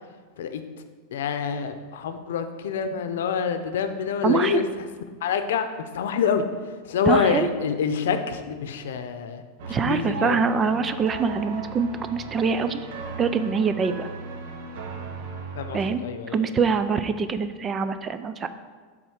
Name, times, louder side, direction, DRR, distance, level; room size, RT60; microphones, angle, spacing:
voice 1, 1.1-4.6 5.2-6.4 6.8-10.4 15.6-16.5, left 6 dB, 90° left, 8 dB, 0.7 m, -26 dB
voice 2, 4.2-4.6 7.1-7.5 9.7-12.8 13.2-14.1 15.7-16.0 16.3-18.5, right 5 dB, 20° right, 11 dB, 0.3 m, -24 dB
sound 1, 9.6-15.9, right 3 dB, 60° right, 0.9 m, -36 dB
7.9 x 3.7 x 6.4 m, 1.5 s
supercardioid pair, 160°, 0 cm